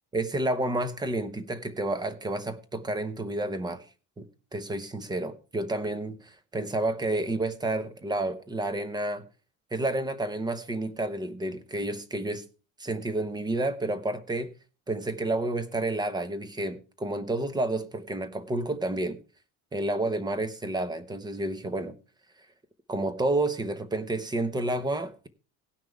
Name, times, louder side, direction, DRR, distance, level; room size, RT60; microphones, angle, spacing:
voice 1, 0.1-3.8 4.2-4.3 4.5-9.2 9.7-12.4 12.8-14.5 14.9-19.2 19.7-22.0 22.9-25.3, right 2 dB, 15° right, 0.9 m, -30 dB
17.5 x 5.9 x 4.6 m
cardioid pair, 165°, 32 cm